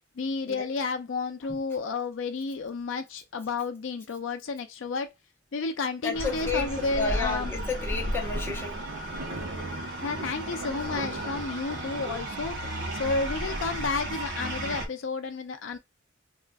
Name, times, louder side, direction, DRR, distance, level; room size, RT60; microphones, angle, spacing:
voice 1, 0.2-5.1 5.5-7.5 10.0-12.6 12.9-15.8, left 4 dB, 75° left, 0.4 m, -31 dB
voice 2, 6.0-8.9, left 4 dB, 10° left, 0.8 m, -32 dB
sound 1, 6.1-14.9, right 1 dB, 65° right, 0.8 m, -34 dB
3.6 x 2.4 x 2.2 m
head